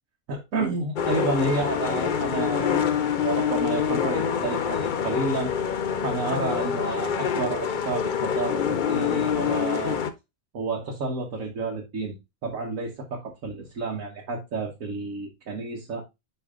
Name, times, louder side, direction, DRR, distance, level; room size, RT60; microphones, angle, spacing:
voice 1, 0.3-5.5 6.0-10.0 10.5-12.2 12.4-16.0, right 3 dB, 65° right, 1.6 m, -30 dB
sound 1, 1.0-10.1, left 7 dB, 50° left, 0.5 m, -26 dB
9.7 x 3.3 x 3.6 m
omnidirectional pair, 1.5 m